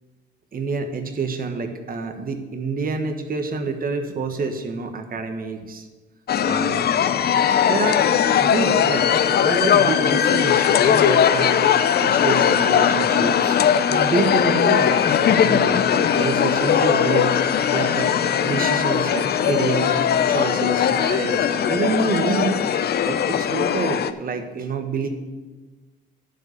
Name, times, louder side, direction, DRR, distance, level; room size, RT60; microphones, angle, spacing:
voice 1, 0.5-5.9 6.4-6.8 7.6-8.0 8.4-9.1 9.4-11.6 12.0-13.6 13.9-17.3 17.7-18.1 18.4-20.0 20.3-22.6 23.0-25.1, right 4 dB, 45° right, 6 dB, 1.3 m, -27 dB
sound 1, 6.3-24.1, left 8 dB, 55° left, 0.6 m, -19 dB
11.0 x 4.9 x 8.3 m, 1.3 s
cardioid pair, 90°, 20 cm